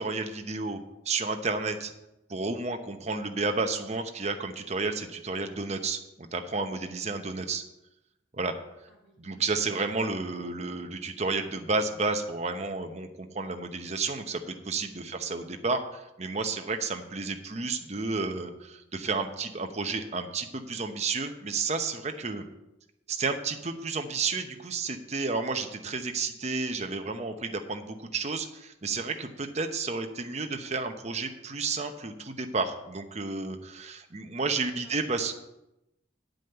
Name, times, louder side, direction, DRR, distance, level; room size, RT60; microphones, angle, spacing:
voice 1, 0.0-1.9 2.3-7.6 8.3-8.5 9.2-22.4 23.1-35.3, right 4 dB, 35° right, 6 dB, 0.9 m, -31 dB
voice 2, 8.9-9.2 15.0-15.2 34.8-35.1, left 1 dB, 85° left, -1 dB, 4.7 m, -58 dB
9.4 x 5.1 x 7.9 m, 0.89 s
head